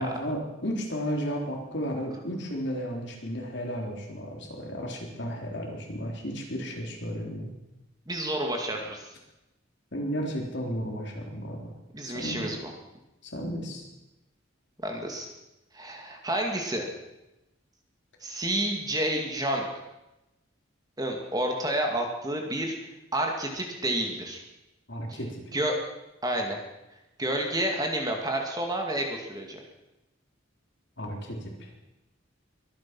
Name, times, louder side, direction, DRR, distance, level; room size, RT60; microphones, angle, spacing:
voice 1, 0.0-7.5 9.9-11.7 12.0-12.5 13.2-13.9 24.9-25.3 31.0-31.7, equal, 60° left, 0 dB, 3.7 m, -33 dB
voice 2, 8.1-9.1 11.9-12.7 14.8-15.3 15.7-16.9 18.2-19.7 21.0-22.8 23.1-24.4 25.1-25.2 25.5-25.8 26.2-26.6 27.2-29.6, right 1 dB, 20° right, 2 dB, 2.1 m, -29 dB
23.0 x 9.6 x 6.1 m, 0.97 s
head